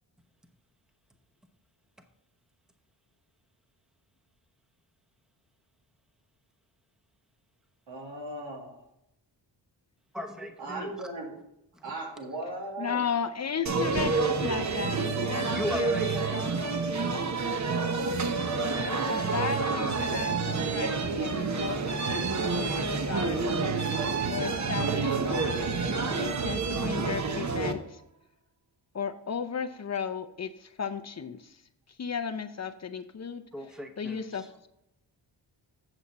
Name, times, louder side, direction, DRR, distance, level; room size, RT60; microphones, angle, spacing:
voice 1, 7.9-8.8 10.6-11.3 11.8-13.0, right 1 dB, 80° right, 0 dB, 2.5 m, -37 dB
voice 2, 10.1-11.1 11.7-11.9 15.5-16.5 18.3-18.8 33.5-34.5, left 1 dB, ahead, 6 dB, 0.9 m, -38 dB
voice 3, 12.8-16.8 18.8-22.2 22.6-23.6 24.3-28.0 28.9-31.6 32.0-33.4 34.0-34.7, left 6 dB, 35° left, 10 dB, 0.6 m, -35 dB
sound 1, 13.7-27.7, right 4 dB, 40° right, 0.9 m, -28 dB
8.8 x 7.0 x 4.1 m, 0.84 s
cardioid pair, 105°, 44 cm